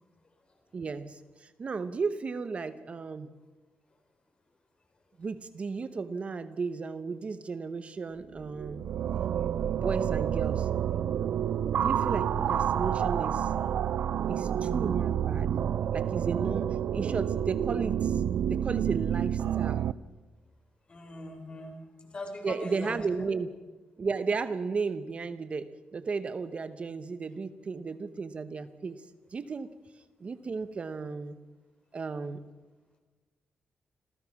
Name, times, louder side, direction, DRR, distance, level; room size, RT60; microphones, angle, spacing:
voice 1, 0.7-3.3 5.2-8.8 9.7-10.7 11.7-13.5 14.3-15.5 15.9-18.2 18.5-19.8 22.4-23.5 24.0-29.0 29.3-29.7 30.2-31.4 31.9-32.4, right 4 dB, 40° right, 11 dB, 0.9 m, -34 dB
sound 1, 8.3-19.9, right 9 dB, 70° right, 0.5 m, -29 dB
voice 2, 11.8-12.2 20.9-23.3, left 1 dB, 35° left, 4 dB, 4.8 m, -42 dB
27.0 x 16.5 x 6.0 m, 1.3 s
cardioid pair, 115°, 3 cm